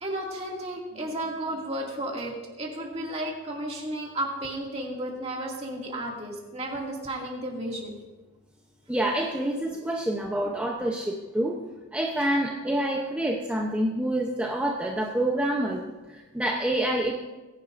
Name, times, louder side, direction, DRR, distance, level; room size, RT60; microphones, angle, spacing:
voice 1, 0.0-8.0 12.2-12.3, right 1 dB, 30° right, -2 dB, 2.3 m, -33 dB
voice 2, 8.9-11.6 11.9-15.8 16.1-17.1, right 1 dB, 5° right, -1 dB, 0.7 m, -27 dB
20.5 x 10.5 x 2.6 m, 1.2 s
head